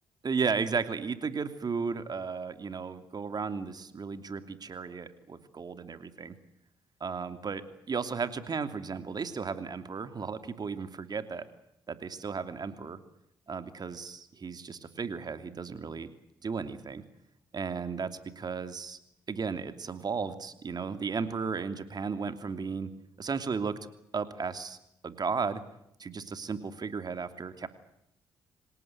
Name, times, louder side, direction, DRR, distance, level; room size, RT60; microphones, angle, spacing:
voice 1, 0.2-6.4 7.0-7.6 7.9-11.4 11.9-13.0 13.5-16.1 16.4-17.0 17.5-18.1 18.4-19.0 19.3-22.9 23.2-23.7 24.1-24.8 25.0-25.6 26.0-27.7, right 5 dB, 45° right, 10 dB, 2.8 m, -34 dB
26.5 x 18.5 x 9.3 m, 0.80 s
hypercardioid pair, 50°, 10 cm